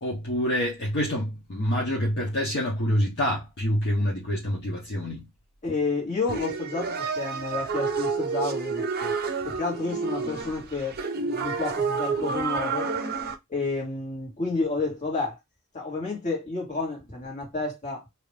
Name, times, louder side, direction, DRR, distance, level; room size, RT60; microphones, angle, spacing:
voice 1, 0.0-5.3, equal, 50° left, 0.9 m, -27 dB
voice 2, 5.6-9.2 9.4-12.9 13.5-15.4 15.7-18.0, left 3 dB, 35° left, 1.7 m, -30 dB
sound 1, 6.3-13.3, right 4 dB, 45° right, 0.6 m, -29 dB
2.9 x 2.5 x 3.3 m
head